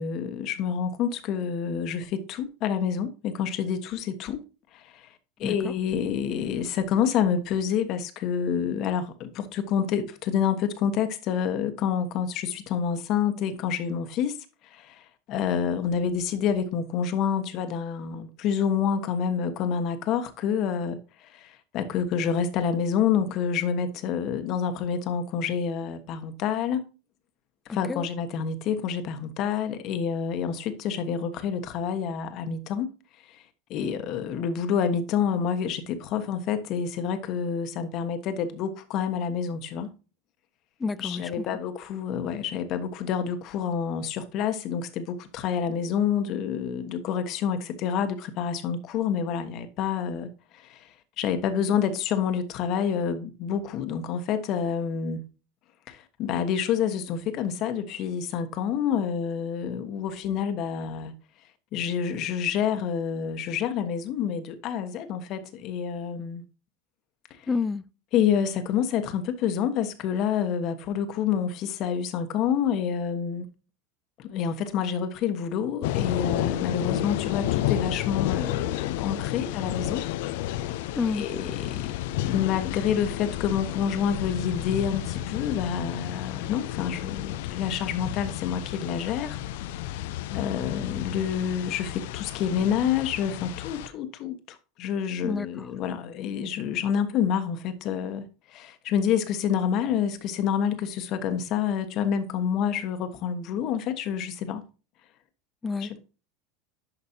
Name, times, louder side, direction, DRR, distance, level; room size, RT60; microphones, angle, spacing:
voice 1, 0.0-4.4 4.7-5.1 5.4-14.4 14.7-15.0 15.3-26.8 27.7-32.9 33.3-33.4 33.7-39.9 41.0-50.9 51.2-55.2 55.9-61.1 61.7-66.4 68.1-73.5 74.2-80.0 81.1-81.9 82.2-89.4 90.3-104.6 105.8-106.0, left 7 dB, 50° left, 1.2 m, -28 dB
voice 2, 5.4-5.7 27.7-28.1 40.8-41.5 67.5-67.8 81.0-81.3 95.2-95.7 105.6-106.0, left 4 dB, 15° left, 0.4 m, -30 dB
sound 1, 75.8-93.9, left 13 dB, 75° left, 0.5 m, -31 dB
11.0 x 5.2 x 2.8 m
supercardioid pair, 125°, 0 cm